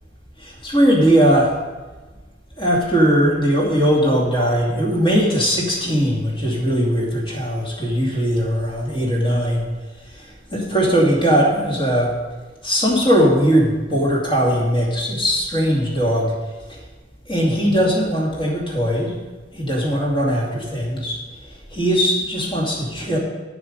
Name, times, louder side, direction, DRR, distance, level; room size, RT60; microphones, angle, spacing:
voice 1, 0.4-1.5 2.6-9.7 10.1-12.1 12.6-16.3 16.7-16.8 17.3-19.1 19.5-21.2 21.7-23.2, equal, 25° left, -3 dB, 2.4 m, -19 dB
9.1 x 7.8 x 5.3 m, 1.2 s
head